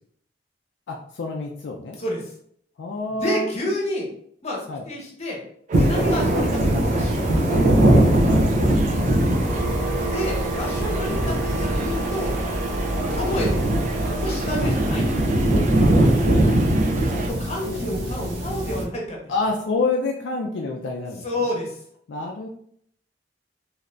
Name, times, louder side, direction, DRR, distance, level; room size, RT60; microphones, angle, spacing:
voice 1, 0.9-2.0 2.8-3.5 4.7-4.8 8.2-9.5 14.6-14.7 15.9-17.1 17.6-17.9 19.3-21.5 22.1-22.5, left 3 dB, 70° left, 0 dB, 0.4 m, -29 dB
voice 2, 3.2-4.1 4.4-5.4 5.7-7.4 9.2-9.4 10.1-12.3 13.1-13.5 14.0-15.4 17.1-19.2 21.2-21.8, left 1 dB, 35° left, -2 dB, 0.9 m, -29 dB
sound 1, 5.7-17.3, right 3 dB, 45° right, 0.4 m, -33 dB
sound 2, 5.7-18.8, right 1 dB, 80° right, 0.6 m, -21 dB
sound 3, 9.4-18.9, right 1 dB, 10° right, 0.9 m, -31 dB
2.8 x 2.5 x 3.2 m, 0.66 s
head